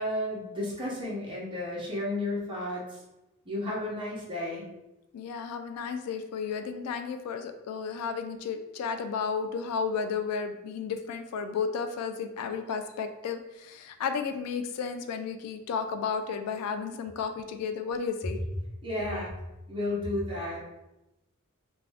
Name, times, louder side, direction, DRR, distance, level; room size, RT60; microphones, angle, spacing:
voice 1, 0.0-3.0 3.5-4.7 18.8-19.3 19.7-20.7, left 1 dB, 20° right, -5 dB, 0.7 m, -32 dB
voice 2, 5.1-18.4, left 6 dB, 90° left, 12 dB, 0.3 m, -33 dB
2.5 x 2.2 x 3.3 m, 0.94 s
head